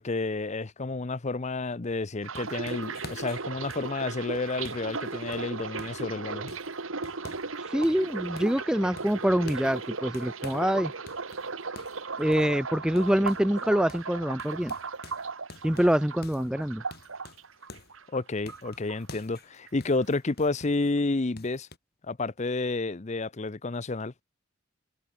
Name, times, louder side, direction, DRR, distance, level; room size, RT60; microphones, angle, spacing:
voice 1, 0.0-6.5 18.1-21.7 22.1-24.1, left 3 dB, 35° left, 0.7 m, -30 dB
sound 1, 1.9-6.1 6.5-7.6 7.8-8.6 9.0-10.7 11.1-13.6 13.9-14.1 14.4-18.0 18.5-20.9 21.4-21.8, left 3 dB, 50° left, 5.0 m, -49 dB
sound 2, 2.2-18.2 18.5-19.4 19.7-20.0, right 4 dB, 80° right, 1.7 m, -37 dB
voice 2, 7.7-10.9 12.2-14.7 15.6-16.8, equal, 5° right, 0.6 m, -25 dB
head